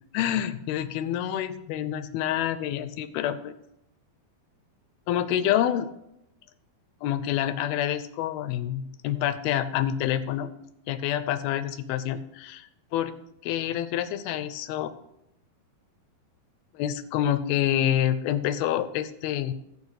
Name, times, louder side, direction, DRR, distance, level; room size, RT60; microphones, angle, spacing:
voice 1, 0.1-3.5 5.1-5.9 7.0-10.5 10.9-13.1 13.4-14.9 16.7-19.5, left 11 dB, 85° left, 13 dB, 2.4 m, -27 dB
12.5 x 5.0 x 6.4 m, 0.84 s
omnidirectional pair, 4.4 m